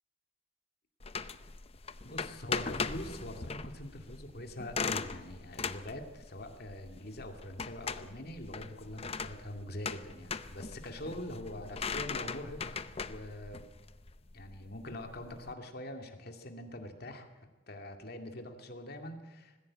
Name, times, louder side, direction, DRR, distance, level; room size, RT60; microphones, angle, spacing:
sound 1, 1.0-15.5, left 5 dB, 30° left, 0.7 m, -40 dB
voice 1, 2.0-13.6 14.3-19.6, left 1 dB, 50° left, 4 dB, 2.4 m, -44 dB
19.5 x 15.5 x 8.6 m, 1.2 s
head